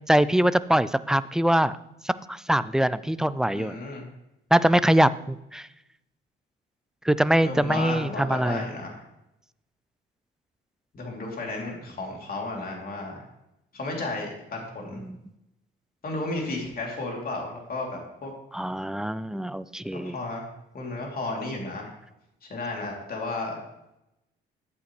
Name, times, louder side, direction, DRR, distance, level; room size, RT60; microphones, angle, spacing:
voice 1, 0.1-1.8 2.0-3.8 4.5-5.7 7.1-8.6 14.9-15.2 18.5-20.2, right 1 dB, 5° right, 15 dB, 0.4 m, -23 dB
voice 2, 3.5-4.1 7.4-9.0 10.9-13.2 13.7-15.0 16.0-18.3 19.9-20.4 20.7-21.9 22.5-23.6, left 2 dB, 50° left, 0 dB, 3.0 m, -33 dB
11.5 x 8.3 x 3.2 m, 0.87 s
cardioid pair, 90°, 20 cm